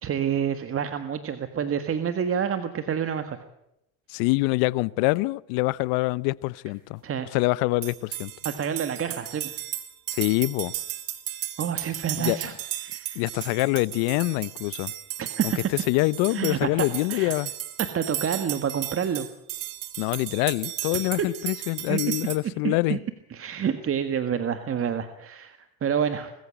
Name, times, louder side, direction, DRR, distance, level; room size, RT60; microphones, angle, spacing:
voice 1, 0.0-3.4 7.0-7.3 8.4-9.5 11.6-12.5 12.8-13.3 15.2-15.7 16.3-17.3 17.9-19.3 20.9-21.3 21.9-22.0 22.6-23.0 23.3-26.3, right 8 dB, 35° right, 1.7 m, -28 dB
voice 2, 4.1-7.0 7.3-8.3 10.1-10.7 12.2-12.4 13.1-14.9 15.4-15.5 15.9-17.5 20.0-23.0, left 22 dB, 75° left, 0.8 m, -25 dB
sound 1, 7.8-22.4, right 13 dB, 60° right, 2.4 m, -35 dB
21.5 x 14.5 x 9.0 m
supercardioid pair, 95°, 37 cm